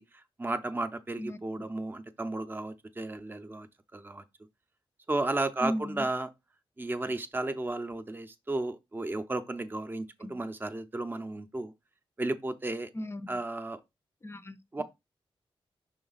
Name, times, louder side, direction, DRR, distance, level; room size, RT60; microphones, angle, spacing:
voice 1, 0.0-4.2 5.1-6.3 6.8-11.7 12.2-12.9 13.3-13.8 14.7-14.8, right 2 dB, 20° right, 0.6 m, -34 dB
voice 2, 5.6-6.0 10.2-10.3 13.0-13.2 14.2-14.8, equal, 25° left, 0.5 m, -35 dB
6.1 x 3.8 x 4.0 m
wide cardioid pair, 125°, 10 cm